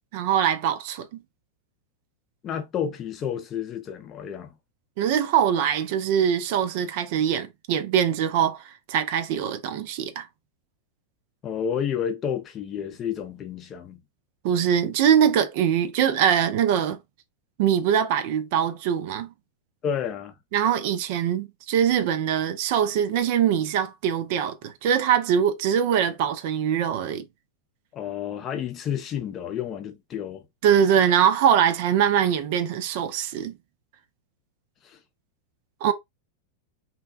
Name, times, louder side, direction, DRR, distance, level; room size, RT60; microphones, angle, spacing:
voice 1, 0.1-1.1 5.0-8.6 8.9-10.3 14.4-17.0 17.6-19.3 20.5-27.3 30.6-33.5 35.8-35.9, right 9 dB, 50° right, 0.4 m, -22 dB
voice 2, 2.4-4.5 11.4-14.0 19.8-20.3 27.9-30.4 34.8-35.0, left 8 dB, 30° left, 0.5 m, -30 dB
2.8 x 2.1 x 2.4 m
figure-of-eight pair, 90°, 0 cm